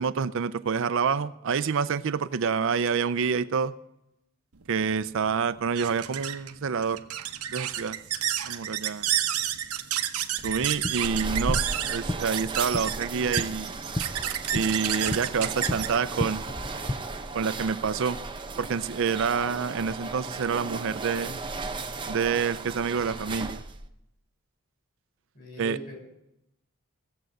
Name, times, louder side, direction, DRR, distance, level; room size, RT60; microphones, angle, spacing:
voice 1, 0.0-3.7 4.7-7.0 7.5-8.0 8.4-9.1 10.4-11.6 11.9-13.7 14.5-16.4 17.3-18.2 18.6-21.4 22.1-23.6 25.6-25.8, right 6 dB, 60° right, 13 dB, 0.5 m, -27 dB
sound 1, 4.6-17.5, right 11 dB, 90° right, 0.9 m, -31 dB
sound 2, 10.4-16.9, left 1 dB, 15° left, 0.4 m, -35 dB
sound 3, 10.4-23.9, right 3 dB, 20° right, 0.7 m, -36 dB
voice 2, 25.3-26.0, left 2 dB, 40° left, 0 dB, 6.2 m, -39 dB
16.5 x 7.7 x 7.8 m, 0.84 s
head